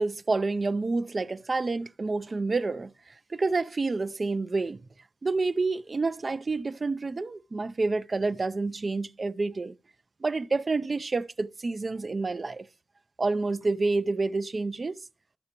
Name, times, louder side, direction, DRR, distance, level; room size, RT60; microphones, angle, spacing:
voice 1, 0.0-4.8 5.2-9.7 10.2-12.7 13.2-15.0, right 3 dB, 45° right, 0.5 m, -28 dB
13.5 x 5.7 x 2.9 m
cardioid pair, 70°, 0 cm